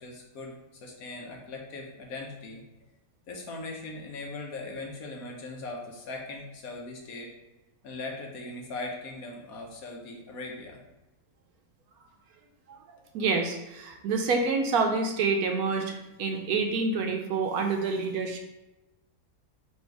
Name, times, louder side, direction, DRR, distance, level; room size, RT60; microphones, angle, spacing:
voice 1, 0.0-2.6 3.3-7.3 7.8-10.8, left 2 dB, 65° left, 0 dB, 1.2 m, -39 dB
voice 2, 13.1-18.4, right 4 dB, 70° right, 4 dB, 1.0 m, -27 dB
4.4 x 2.7 x 4.5 m, 1.0 s
omnidirectional pair, 1.7 m